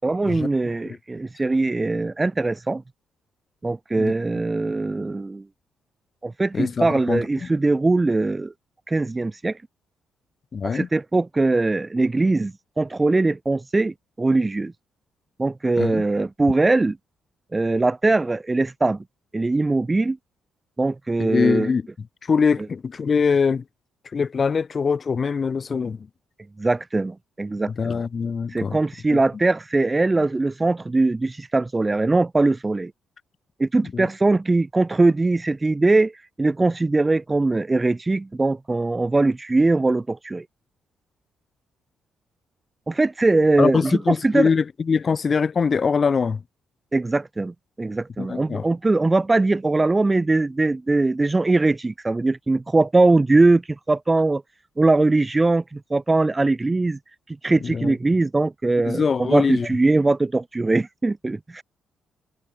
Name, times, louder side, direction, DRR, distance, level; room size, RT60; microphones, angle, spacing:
voice 1, 0.0-2.8 3.6-5.4 6.2-8.5 8.9-9.6 10.6-14.7 15.4-17.0 17.5-19.0 19.3-20.2 20.8-21.7 26.6-28.0 28.5-32.9 33.6-36.1 36.4-40.4 42.9-44.5 46.9-53.6 53.9-54.4 54.8-57.0 57.4-61.6, right 2 dB, 20° right, 0.9 m, -21 dB
voice 2, 6.5-7.5 10.5-10.9 15.8-16.0 21.2-23.6 24.1-26.1 27.7-28.8 29.1-29.2 33.9-34.1 43.6-46.4 48.2-48.7 57.6-57.9 58.9-59.7, left 5 dB, 40° left, 5.3 m, -23 dB
cardioid pair, 90°, 0 cm